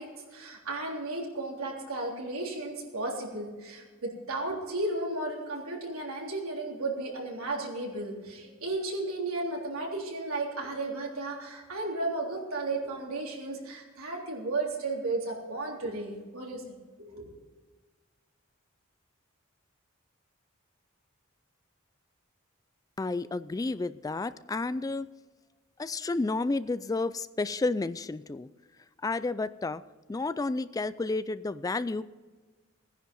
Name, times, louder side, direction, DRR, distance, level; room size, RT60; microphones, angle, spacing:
voice 1, 0.0-17.3, right 2 dB, 90° right, -1 dB, 3.5 m, -34 dB
voice 2, 23.0-25.1 25.8-28.5 29.0-29.8 30.1-32.0, left 3 dB, 15° left, 15 dB, 0.3 m, -31 dB
17.0 x 10.5 x 5.4 m, 1.4 s
head